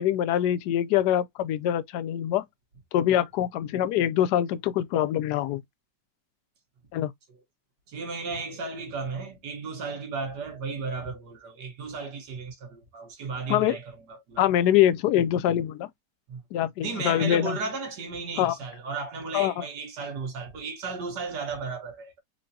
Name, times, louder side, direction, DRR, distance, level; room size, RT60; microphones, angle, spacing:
voice 1, 0.0-2.4 2.9-5.6 6.9-7.1 13.5-13.8 14.4-15.9 16.5-17.6 18.4-18.6 19.3-19.6, left 11 dB, 70° left, 1.0 m, -24 dB
voice 2, 7.9-14.5 16.3-16.4 16.8-22.2, right 4 dB, 65° right, 1.8 m, -35 dB
4.5 x 2.6 x 2.7 m
omnidirectional pair, 2.0 m